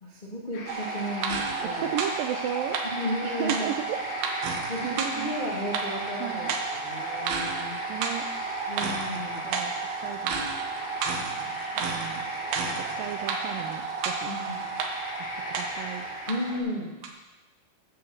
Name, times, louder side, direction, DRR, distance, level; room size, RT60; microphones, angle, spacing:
voice 1, 0.0-1.9 2.8-3.7 4.7-6.5 6.8-7.8 8.7-9.5 14.2-14.7 16.3-16.9, equal, 30° left, -5 dB, 0.9 m, -34 dB
sound 1, 0.5-16.6, left 2 dB, 65° left, 3.5 m, -40 dB
sound 2, 0.7-16.6 17.0-17.1, right 5 dB, 70° right, 2.9 m, -32 dB
voice 2, 1.8-2.8 3.2-4.0 4.8-5.4 6.2-6.5 7.9-8.3 9.4-9.7 10.0-10.4 11.8-12.2 13.0-14.3 15.6-16.1, right 10 dB, 90° right, 4 dB, 2.0 m, -34 dB
12.0 x 6.6 x 7.3 m, 1.1 s
omnidirectional pair, 4.9 m